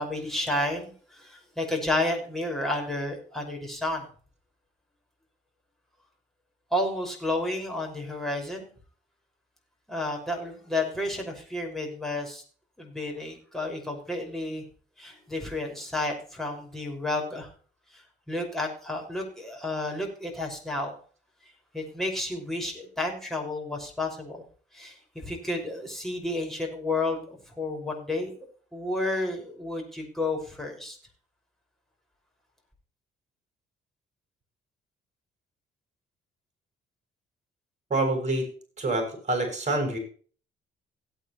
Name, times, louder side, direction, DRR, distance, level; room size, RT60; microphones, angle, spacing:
voice 1, 0.0-4.1 6.7-8.7 9.9-12.4 12.8-14.6 15.0-17.5 17.9-21.0 21.7-24.4 24.7-28.3 28.7-31.0, left 2 dB, ahead, 0 dB, 5.8 m, -31 dB
voice 2, 37.9-38.5 38.8-40.0, right 2 dB, 35° right, 4 dB, 6.9 m, -26 dB
17.0 x 8.9 x 3.2 m, 0.42 s
cardioid pair, 90°, 20 cm